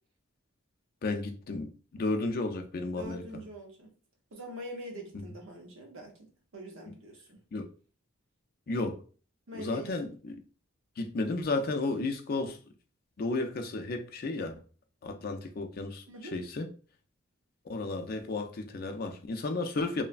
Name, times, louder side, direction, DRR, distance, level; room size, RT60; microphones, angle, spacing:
voice 1, 1.0-3.2 5.1-5.2 7.5-7.7 8.7-9.0 9.5-10.4 11.0-12.6 13.2-14.5 15.0-16.7 17.7-20.0, left 3 dB, 50° left, 0.4 m, -33 dB
voice 2, 3.0-3.9 4.3-7.4 9.5-9.9 16.1-16.4, equal, 85° right, 0.7 m, -44 dB
3.1 x 2.1 x 2.4 m
head